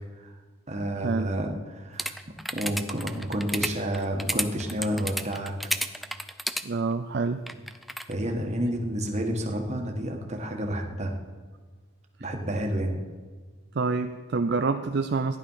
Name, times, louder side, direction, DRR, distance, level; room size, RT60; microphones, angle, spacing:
voice 1, 0.7-2.1 2.5-5.5 8.1-11.2 12.2-13.0, equal, 35° right, 2 dB, 1.6 m, -30 dB
sound 1, 2.0-6.6 7.5-8.1, equal, ahead, 0.4 m, -31 dB
voice 2, 6.6-7.4 12.2-12.3 13.7-15.4, right 4 dB, 55° right, 7 dB, 0.5 m, -27 dB
15.0 x 10.5 x 5.7 m, 1.5 s
head